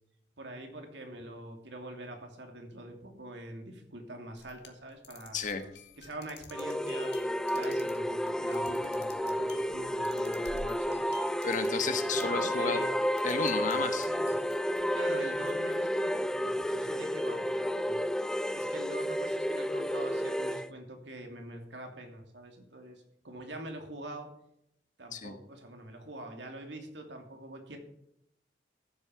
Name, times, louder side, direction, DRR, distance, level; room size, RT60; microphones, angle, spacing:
voice 1, 0.4-5.4 6.0-7.2 7.5-11.1 12.1-12.9 14.0-14.3 14.9-18.0 18.5-24.3 25.0-27.8, right 1 dB, 85° right, 3 dB, 2.8 m, -44 dB
sound 1, 4.3-12.5 12.8-13.7 14.0-16.4, left 4 dB, 70° left, 1.9 m, -51 dB
voice 2, 5.3-5.6 11.4-12.8 13.2-14.1 25.1-25.3, left 4 dB, 45° left, 8 dB, 1.4 m, -32 dB
sound 2, 6.5-20.7, equal, 5° left, 0.5 m, -31 dB
14.0 x 7.9 x 5.9 m, 0.76 s
head